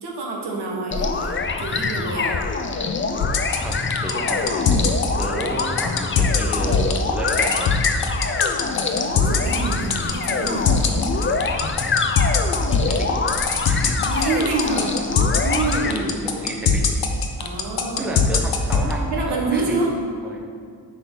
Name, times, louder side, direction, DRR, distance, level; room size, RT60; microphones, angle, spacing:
voice 1, 0.0-2.4 8.9-11.3 14.0-16.1 17.4-18.1 19.1-19.9, right 3 dB, 75° right, -1 dB, 1.4 m, -27 dB
sound 1, 0.9-15.9, left 4 dB, 30° left, 0.5 m, -25 dB
sound 2, 3.2-18.9, left 6 dB, 65° left, 0.8 m, -20 dB
voice 2, 3.6-4.9 5.2-7.7 12.6-13.2 13.6-14.0 15.7-16.9 18.0-19.9 20.2-20.4, right 1 dB, 5° right, -1 dB, 0.9 m, -31 dB
9.1 x 4.4 x 3.9 m, 2.1 s
cardioid pair, 90°, 41 cm